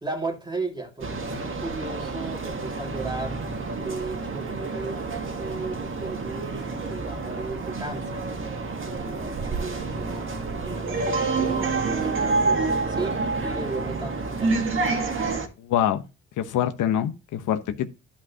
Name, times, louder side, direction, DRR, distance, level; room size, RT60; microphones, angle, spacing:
voice 1, 0.0-3.4 3.8-5.1 5.4-8.2 8.8-12.6 12.9-14.7, right 3 dB, 15° right, 2.1 m, -35 dB
sound 1, 1.0-15.5, right 3 dB, 40° right, 1.7 m, -28 dB
voice 2, 15.6-16.0 16.4-17.9, left 10 dB, 80° left, 1.0 m, -25 dB
12.0 x 5.4 x 2.8 m
cardioid pair, 90°, 30 cm